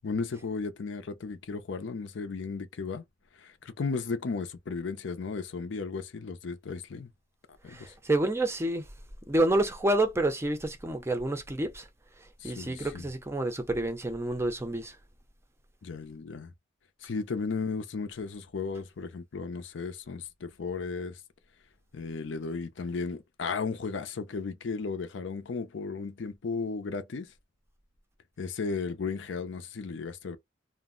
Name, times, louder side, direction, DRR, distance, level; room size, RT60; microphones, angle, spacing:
voice 1, 0.0-3.0 3.4-7.1 7.6-7.9 12.4-13.1 15.8-16.5 17.0-21.2 21.9-27.3 28.4-30.4, left 4 dB, 70° left, 0.5 m, -35 dB
voice 2, 7.7-8.9 9.3-11.8 12.4-14.9, right 1 dB, 15° right, 0.5 m, -28 dB
2.5 x 2.0 x 3.7 m
head